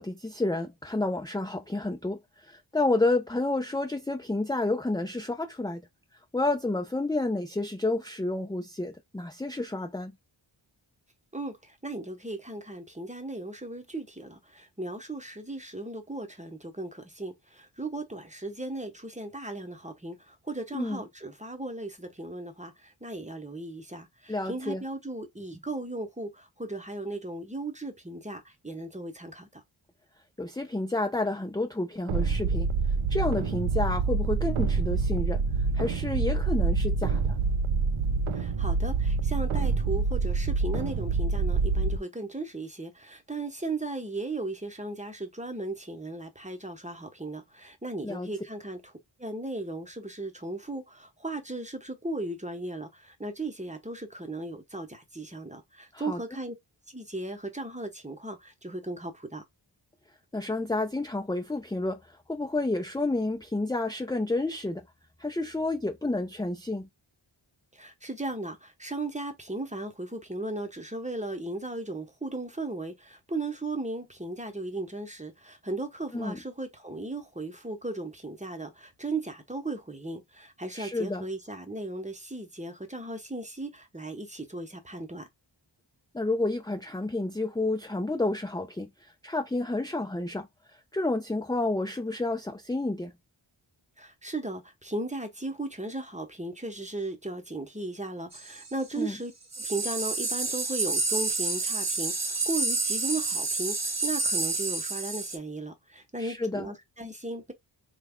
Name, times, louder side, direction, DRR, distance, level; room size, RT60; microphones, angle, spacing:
voice 1, 0.0-5.8 6.3-10.1 20.7-21.0 24.3-24.8 30.4-32.7 33.1-35.4 35.7-37.4 48.0-48.3 55.9-56.2 60.3-64.8 65.2-66.9 76.1-76.4 80.7-81.3 86.1-90.5 90.9-93.1 99.0-99.2 106.2-106.7, left 2 dB, 10° left, 0.5 m, -30 dB
voice 2, 11.3-29.6 38.3-48.9 49.2-56.5 56.9-59.4 67.7-85.3 94.0-99.3 99.6-107.5, right 2 dB, 15° right, 1.0 m, -36 dB
sound 1, 32.1-42.0, right 4 dB, 80° right, 0.6 m, -26 dB
sound 2, 98.3-98.7 99.5-105.4, right 3 dB, 35° right, 0.8 m, -29 dB
3.3 x 2.3 x 3.6 m
wide cardioid pair, 40°, 50 cm